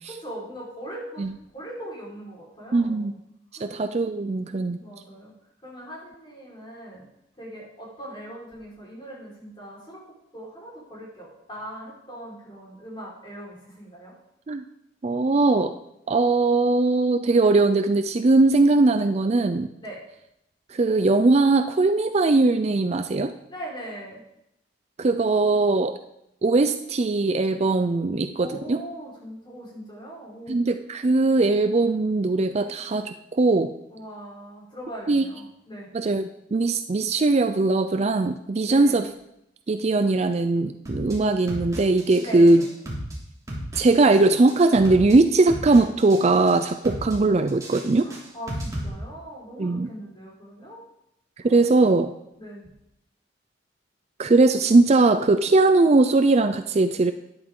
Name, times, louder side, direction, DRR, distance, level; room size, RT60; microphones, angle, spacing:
voice 1, 0.0-3.1 3.5-3.8 4.5-5.3 5.6-7.1 7.4-10.0 10.3-14.1 19.8-20.0 23.5-24.2 28.4-30.6 33.9-35.9 38.6-39.1 42.2-42.7 48.0-50.8 51.4-51.6 52.4-52.7, right 1 dB, 25° left, -5 dB, 4.6 m, -40 dB
voice 2, 2.7-3.1 3.6-4.8 14.5-14.6 15.0-15.7 16.1-19.7 20.7-23.3 25.0-26.0 26.4-28.8 30.5-33.7 35.1-35.2 35.9-39.1 39.7-42.6 43.8-48.1 49.6-49.9 51.4-52.1 54.2-57.1, right 3 dB, 35° right, 9 dB, 0.4 m, -20 dB
sound 1, 40.9-41.1 41.5-42.2 42.5-43.1 43.5-44.2 44.5-45.1 45.5-46.2 46.5-47.1 47.5-48.9, equal, 20° right, 3.0 m, -33 dB
12.5 x 11.0 x 3.8 m, 0.82 s
head